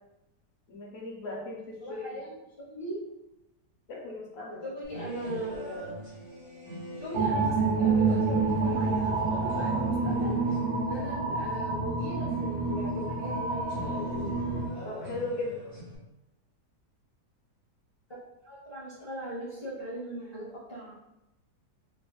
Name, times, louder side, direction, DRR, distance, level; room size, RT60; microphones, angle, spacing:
voice 1, 0.7-2.2 3.9-4.6 14.8-15.6, left 2 dB, 50° left, -1 dB, 0.8 m, -37 dB
voice 2, 1.8-3.0 4.6-5.6 6.9-14.3 18.4-20.9, right 1 dB, 35° left, -9 dB, 0.4 m, -39 dB
sound 1, 4.8-16.0, equal, 45° right, 1.4 m, -43 dB
sound 2, 7.1-14.7, right 3 dB, 80° right, 1.2 m, -28 dB
3.9 x 2.5 x 2.3 m, 0.92 s
omnidirectional pair, 1.8 m